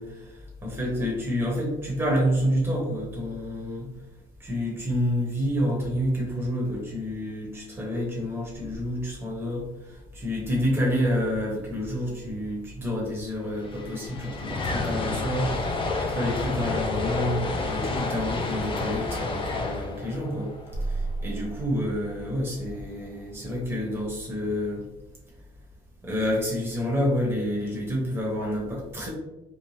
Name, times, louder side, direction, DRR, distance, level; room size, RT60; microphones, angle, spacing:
voice 1, 0.0-3.9 4.4-20.5 20.8-24.8 26.0-29.1, equal, 10° right, -4 dB, 0.9 m, -28 dB
sound 1, 13.4-21.6, left 3 dB, 30° left, 0.4 m, -30 dB
sound 2, 20.7-23.1, right 2 dB, 60° left, 0.9 m, -34 dB
2.7 x 2.1 x 3.1 m, 1.0 s
cardioid pair, 110°, 17 cm